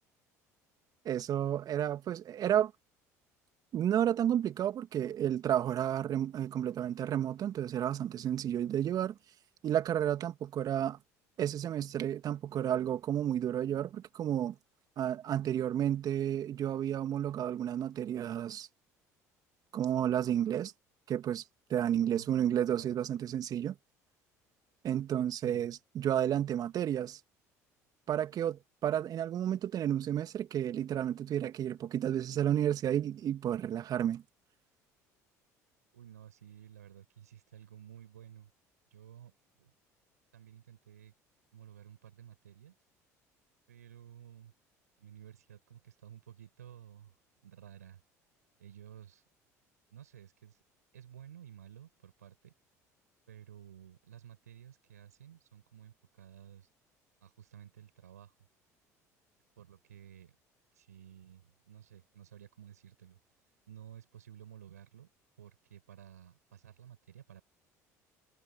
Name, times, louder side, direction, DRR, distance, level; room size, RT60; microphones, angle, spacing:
voice 1, 1.0-2.7 3.7-9.1 9.6-11.0 11.4-14.5 15.0-18.7 19.7-20.7 21.1-21.4 21.7-23.7 24.8-27.2 28.1-34.2, right 10 dB, 50° right, 2.5 m, -31 dB
voice 2, 22.1-23.0 25.4-25.7 35.9-38.5 38.9-39.3 39.6-39.7 40.3-41.1 41.5-42.7 43.7-44.5 45.0-47.2 47.4-48.0 48.6-49.2 49.9-50.6 50.9-52.5 53.3-56.7 57.2-58.4 59.6-60.3 60.7-63.2 63.7-65.1 65.4-67.4, right 10 dB, 85° right, 7.5 m, -53 dB
hypercardioid pair, 60°, 8 cm